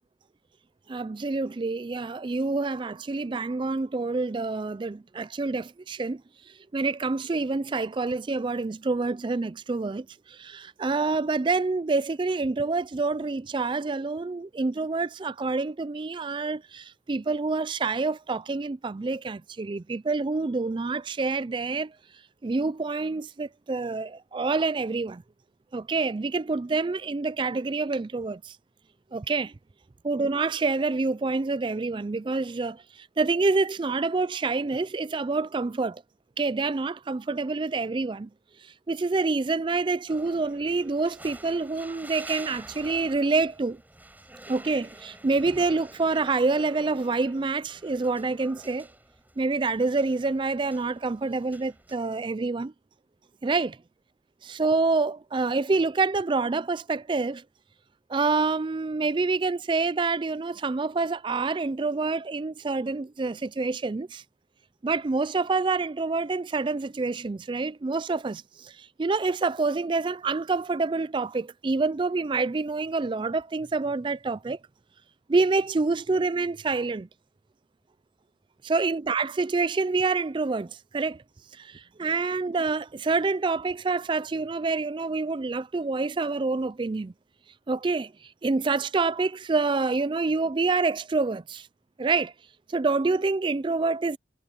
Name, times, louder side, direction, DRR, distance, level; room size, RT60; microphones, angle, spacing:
voice 1, 0.9-6.2 6.7-21.9 22.4-25.2 25.7-28.6 29.1-29.5 30.0-36.0 36.4-38.3 38.9-43.8 44.5-48.9 49.4-52.7 53.4-53.7 54.4-57.4 58.1-64.2 64.8-74.6 75.3-77.1 78.6-81.2 81.6-87.1 87.7-88.1 88.4-91.7 92.0-92.3 92.7-94.2, right 3 dB, 25° right, 0.4 m, -27 dB
sound 1, 40.1-52.0, right 1 dB, 10° right, 5.8 m, -48 dB
head